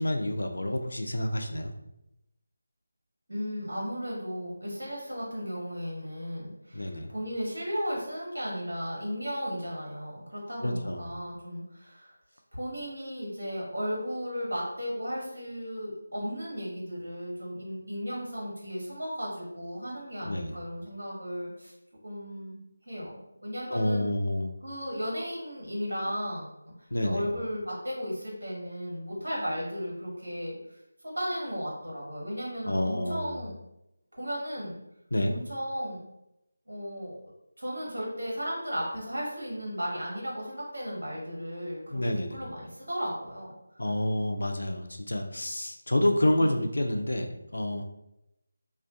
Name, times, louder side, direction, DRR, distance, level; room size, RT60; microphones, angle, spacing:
voice 1, 0.0-1.7 6.7-7.1 10.6-11.0 20.2-20.5 23.7-24.5 26.9-27.3 32.6-33.4 35.1-35.3 41.9-42.4 43.8-47.8, left 1 dB, 80° left, 5 dB, 0.4 m, -28 dB
voice 2, 3.3-12.2 12.5-21.7 22.0-22.6 22.8-23.1 23.4-24.1 24.6-30.8 31.0-33.5 34.1-34.8 35.2-36.0 36.7-37.2 37.6-43.8 46.4-46.6, equal, 80° right, -4 dB, 1.0 m, -35 dB
2.4 x 2.2 x 2.4 m, 0.88 s
figure-of-eight pair, 165°, 0 cm